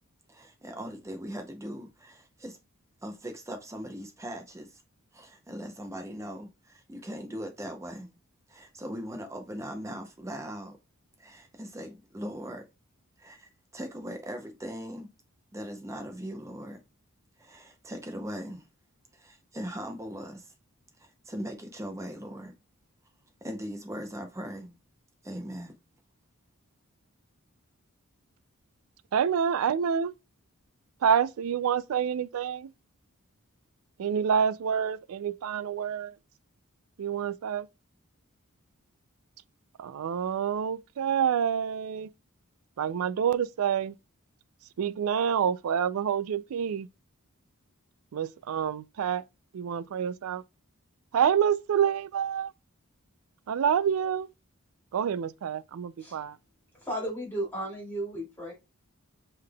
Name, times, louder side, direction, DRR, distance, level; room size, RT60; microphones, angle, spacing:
voice 1, 0.3-2.6 3.0-4.8 5.1-8.2 8.5-10.8 11.2-12.7 13.2-15.1 15.5-16.8 17.4-18.6 19.1-20.5 21.0-22.5 23.4-24.8 25.2-25.7, equal, 15° right, 0.6 m, -40 dB
voice 2, 29.1-30.1 31.0-32.7 34.0-36.1 37.0-37.7 39.8-42.1 42.8-44.0 44.8-46.9 48.1-49.2 49.5-50.4 51.1-52.5 53.5-54.3 54.9-56.4, right 8 dB, 70° right, 0.3 m, -27 dB
voice 3, 56.8-58.5, right 1 dB, 10° left, 2.4 m, -34 dB
5.6 x 3.4 x 2.2 m
head